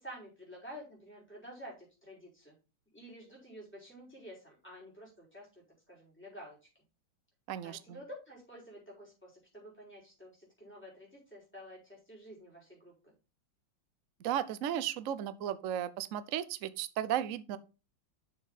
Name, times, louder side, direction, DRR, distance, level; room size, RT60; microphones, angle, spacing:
voice 1, 0.0-2.5 2.9-6.8 7.6-13.1, equal, 5° left, 4.9 m, -50 dB
voice 2, 7.5-8.0 14.2-17.6, right 10 dB, 80° right, 0.7 m, -35 dB
7.3 x 6.8 x 4.1 m
omnidirectional pair, 2.3 m